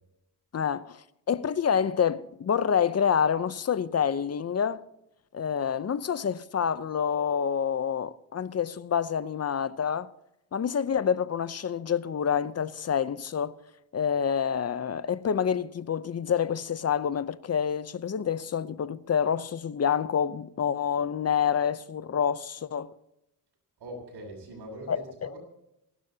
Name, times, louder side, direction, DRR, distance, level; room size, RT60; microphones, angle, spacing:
voice 1, 0.5-4.8 5.3-10.1 10.5-13.6 13.9-22.9 24.9-25.3, left 7 dB, 40° left, 0.7 m, -27 dB
voice 2, 23.8-25.4, right 1 dB, 85° right, 6.6 m, -42 dB
28.0 x 12.0 x 2.8 m
cardioid pair, 95°, 39 cm